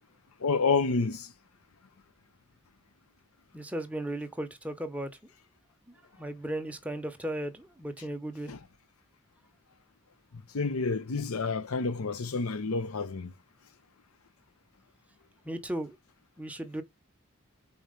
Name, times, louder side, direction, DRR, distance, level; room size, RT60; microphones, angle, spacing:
voice 1, 0.4-1.3 8.5-8.6 10.5-13.3, left 4 dB, 80° left, 0.7 m, -29 dB
voice 2, 3.5-5.1 6.2-8.5 15.4-16.0 16.4-16.8, right 1 dB, 5° right, 0.8 m, -36 dB
4.4 x 4.2 x 5.1 m
head